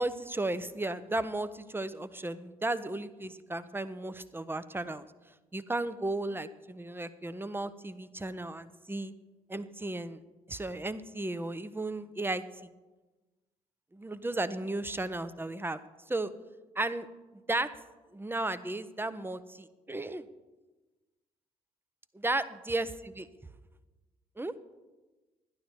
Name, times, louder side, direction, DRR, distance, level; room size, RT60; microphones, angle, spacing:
voice 1, 0.0-5.1 5.5-9.1 9.5-10.2 10.5-12.7 13.9-15.8 16.1-16.3 16.8-17.1 17.5-17.7 18.1-20.3 22.1-23.3 24.4-24.5, right 2 dB, 10° right, 14 dB, 0.8 m, -34 dB
11.5 x 11.5 x 4.5 m, 1.2 s
hypercardioid pair, 45°, 18 cm